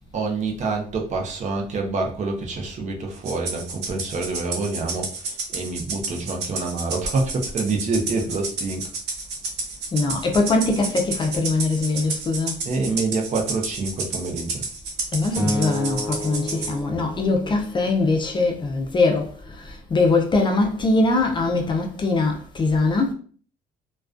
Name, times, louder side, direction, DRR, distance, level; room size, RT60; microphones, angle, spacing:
voice 1, 0.1-8.9 12.6-14.6, right 3 dB, 45° right, 0.6 m, -27 dB
Rattle (instrument), 3.2-16.7, right 4 dB, 75° right, 0.7 m, -31 dB
voice 2, 9.9-12.6 15.1-23.1, left 3 dB, 30° left, 0.5 m, -22 dB
Acoustic guitar, 15.4-17.7, left 1 dB, 30° right, 1.1 m, -29 dB
2.3 x 2.2 x 2.4 m
cardioid pair, 110°, 17 cm